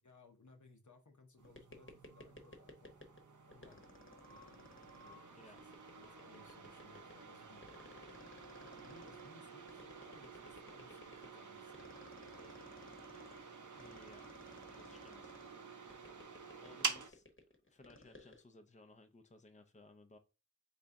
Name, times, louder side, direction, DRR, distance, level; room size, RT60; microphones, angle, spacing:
voice 1, 0.0-2.9 3.5-3.9 4.3-4.7 5.0-5.7 6.0-7.6 8.6-12.7 16.0-16.2, left 3 dB, 75° left, 0.8 m, -63 dB
sound 1, 1.4-3.2 3.5-18.4, left 2 dB, 40° left, 1.0 m, -58 dB
sound 2, 1.4-17.1, right 5 dB, 85° right, 0.6 m, -49 dB
voice 2, 13.8-14.3 14.8-15.3 16.6-17.2 17.7-20.2, left 2 dB, 25° left, 0.6 m, -60 dB
4.0 x 3.3 x 3.5 m
wide cardioid pair, 50°, 30 cm